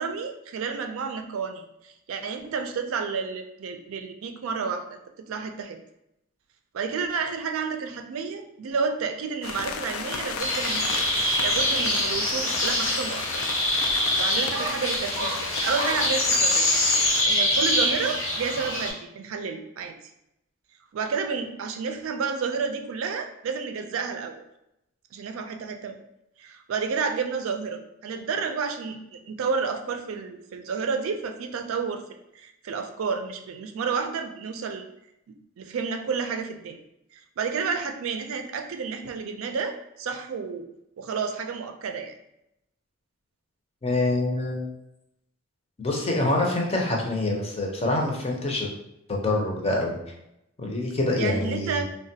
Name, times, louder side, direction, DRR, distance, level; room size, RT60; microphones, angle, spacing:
voice 1, 0.0-5.0 5.3-5.8 6.7-10.8 11.4-13.4 14.1-16.7 17.2-19.9 20.9-24.4 25.1-26.0 26.4-32.0 32.3-34.8 35.6-36.8 37.1-40.6 41.0-42.1 51.2-51.8, right 5 dB, 85° right, 6 dB, 0.4 m, -30 dB
sound 1, 9.4-17.2, left 6 dB, 85° left, 0.3 m, -34 dB
sound 2, 10.4-18.9, left 1 dB, 70° left, 0.9 m, -24 dB
voice 2, 43.8-44.7 45.8-48.7 49.1-50.0 50.6-51.8, left 2 dB, 30° left, 0 dB, 0.5 m, -25 dB
3.1 x 2.2 x 2.7 m, 0.83 s
head